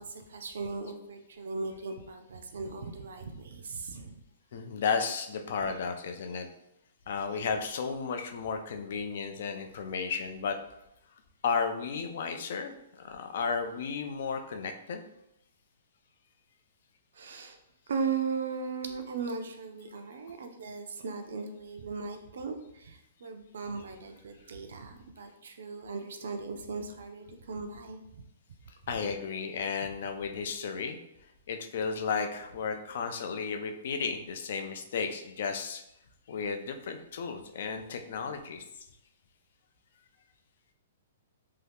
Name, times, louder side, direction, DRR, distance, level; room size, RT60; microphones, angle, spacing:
voice 1, 0.0-4.1 5.6-5.8 17.1-17.6 17.9-28.2, right 4 dB, 75° right, 5 dB, 0.5 m, -37 dB
voice 2, 4.5-6.5 7.1-10.6 11.4-15.0 28.9-31.0 31.5-35.8 36.3-38.6, left 5 dB, 60° left, 5 dB, 0.4 m, -33 dB
2.7 x 2.3 x 3.4 m, 0.81 s
hypercardioid pair, 160°, 0 cm